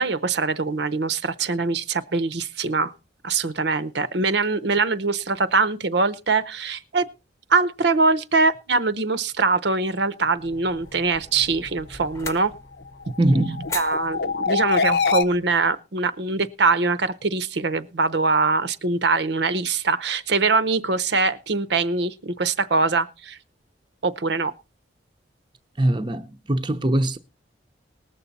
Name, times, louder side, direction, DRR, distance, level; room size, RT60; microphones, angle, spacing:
voice 1, 0.0-2.9 3.2-7.1 7.5-12.5 13.7-23.4 24.0-24.5, right 3 dB, 65° right, 0.7 m, -23 dB
sound 1, 10.3-15.7, left 3 dB, 15° left, 0.9 m, -40 dB
sound 2, 12.9-15.2, left 5 dB, 60° left, 0.8 m, -24 dB
voice 2, 13.2-13.8 25.8-27.2, right 1 dB, 25° right, 0.7 m, -22 dB
20.0 x 7.0 x 4.1 m
head